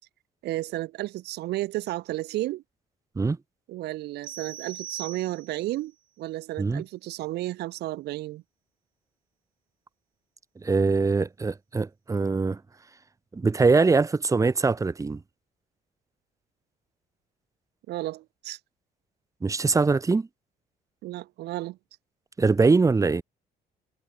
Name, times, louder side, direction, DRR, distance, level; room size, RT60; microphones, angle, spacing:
voice 1, 0.4-2.6 3.7-5.9 6.2-8.4 17.9-18.6 21.0-21.8, right 17 dB, 75° right, 1.4 m, -32 dB
sound 1, 4.2-5.8, right 10 dB, 55° right, 6.7 m, -40 dB
voice 2, 10.6-12.6 13.3-15.2 19.4-20.3 22.4-23.2, right 4 dB, 20° right, 1.5 m, -22 dB
cardioid pair, 110°, 17 cm